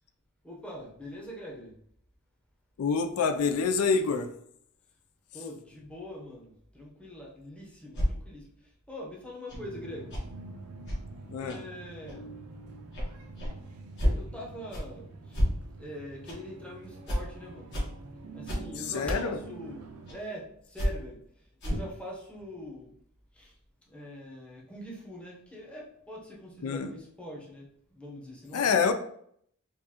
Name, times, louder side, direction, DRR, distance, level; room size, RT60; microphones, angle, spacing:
voice 1, 0.4-1.8 5.3-8.5 8.9-10.1 11.4-12.3 14.1-15.4 15.8-17.7 18.3-21.2 21.6-22.9 23.4-23.5 23.9-28.7, equal, 5° left, -3 dB, 0.8 m, -43 dB
voice 2, 2.8-4.3 11.3-11.6 18.9-19.4 26.6-26.9 28.5-28.9, left 5 dB, 75° left, 8 dB, 0.4 m, -26 dB
sound 1, 7.9-8.1 9.5-9.6 10.1-10.2 10.9-11.0 11.5-11.6 12.1-12.2 12.9-13.1 13.4-13.5 14.0-14.2 14.7-14.8 15.3-15.5 16.3-16.4 17.1-17.2 17.7-17.9 18.5-18.6 19.1-19.2 20.1-20.2 20.8-20.9 21.6-21.9, equal, 55° left, 1.4 m, -29 dB
sound 2, 9.5-20.2, right 3 dB, 75° right, 0.5 m, -46 dB
4.5 x 2.5 x 2.8 m, 0.67 s
head